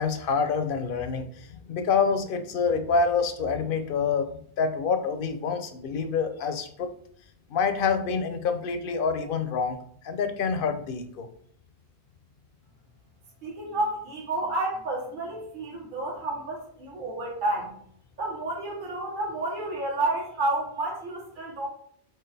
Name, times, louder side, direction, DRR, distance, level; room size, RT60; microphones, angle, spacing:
voice 1, 0.0-6.9 7.5-9.8 10.0-11.3, left 5 dB, 65° left, 8 dB, 0.7 m, -27 dB
voice 2, 13.4-17.7 18.2-21.7, right 2 dB, 50° right, -3 dB, 1.3 m, -30 dB
4.5 x 3.6 x 3.3 m, 0.63 s
omnidirectional pair, 1.1 m